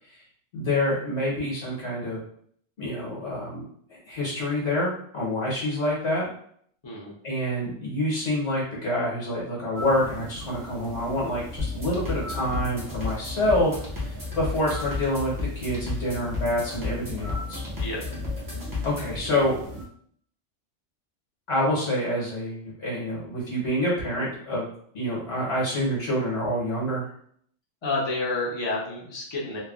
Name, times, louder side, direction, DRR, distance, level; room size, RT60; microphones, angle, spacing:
voice 1, 0.5-2.2 2.8-3.6 3.9-6.3 7.2-17.6 18.8-19.6 21.5-24.7 24.9-27.1, left 1 dB, 70° left, -5 dB, 1.3 m, -27 dB
voice 2, 6.8-7.1 17.8-18.0 27.8-29.6, left 2 dB, 30° left, -4 dB, 0.6 m, -29 dB
sound 1, 9.7-19.9, left 1 dB, 75° right, 1.0 m, -39 dB
sound 2, 11.6-19.2, left 4 dB, 20° right, 0.6 m, -33 dB
3.1 x 2.2 x 2.3 m, 0.62 s
omnidirectional pair, 1.2 m